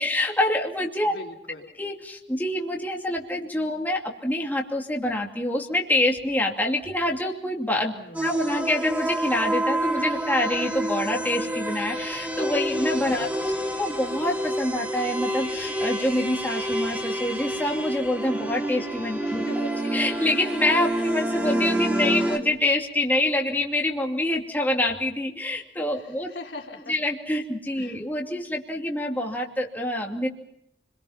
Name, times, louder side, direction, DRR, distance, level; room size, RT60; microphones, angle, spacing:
voice 1, 0.0-1.1 1.8-7.9 8.2-13.3 13.8-19.4 19.9-26.3 26.9-30.3, left 1 dB, 10° left, 0 dB, 2.6 m, -26 dB
voice 2, 1.0-1.7 7.9-8.5 13.0-13.6 19.2-19.8 20.9-21.1 25.9-27.0 27.7-28.0, left 2 dB, 75° left, 0 dB, 4.0 m, -41 dB
sound 1, 8.1-22.4, right 1 dB, 10° right, 3.3 m, -28 dB
29.5 x 22.5 x 5.8 m, 0.76 s
head